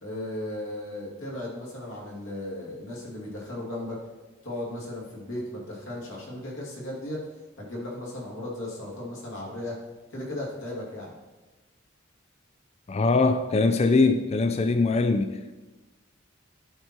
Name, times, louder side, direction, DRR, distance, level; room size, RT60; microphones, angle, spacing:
voice 1, 0.0-4.0 4.4-7.2 7.6-9.8 10.1-11.1, left 1 dB, 70° left, -3 dB, 2.5 m, -36 dB
voice 2, 12.9-15.6, left 3 dB, 30° left, 9 dB, 0.3 m, -22 dB
11.0 x 4.5 x 4.5 m, 1.1 s
head